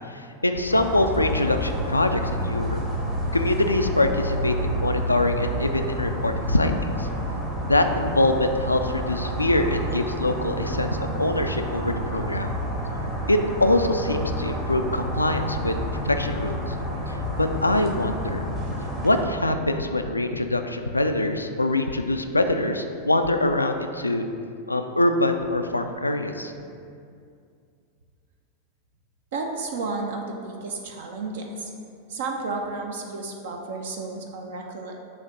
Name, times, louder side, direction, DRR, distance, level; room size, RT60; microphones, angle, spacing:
voice 1, 0.1-2.8 3.3-7.1 7.7-12.5 13.3-15.8 16.0-16.7 17.1-18.4 19.0-24.3 24.7-26.5, left 1 dB, 85° left, 6 dB, 0.3 m, -24 dB
sound 1, 0.7-19.2, equal, 35° right, 1.2 m, -29 dB
voice 2, 29.3-31.7 32.1-34.9, right 3 dB, 60° right, 2 dB, 0.6 m, -32 dB
6.4 x 2.8 x 5.5 m, 2.4 s
figure-of-eight pair, 90°, 0 cm